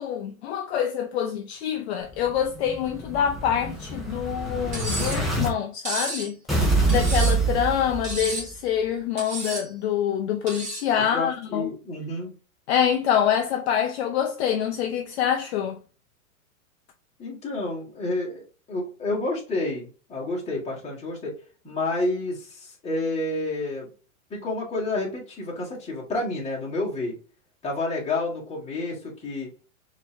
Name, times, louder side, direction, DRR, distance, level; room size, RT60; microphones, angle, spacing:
voice 1, 0.0-6.3 6.9-11.7 12.7-15.8, left 9 dB, 50° left, 0.6 m, -26 dB
Explosion, 2.1-5.5 6.5-8.5, right 3 dB, ahead, 0.9 m, -26 dB
Cutlery silverware, 4.7-5.3 5.9-6.3 6.9-7.5 8.0-8.5 9.2-9.7 10.5-10.9, right 2 dB, 15° right, 1.8 m, -32 dB
voice 2, 11.0-12.3 17.2-18.4 18.7-21.3 21.6-23.9 24.3-27.1 27.6-29.5, left 2 dB, 15° left, 1.8 m, -29 dB
4.2 x 3.0 x 3.2 m
hypercardioid pair, 130°, 41 cm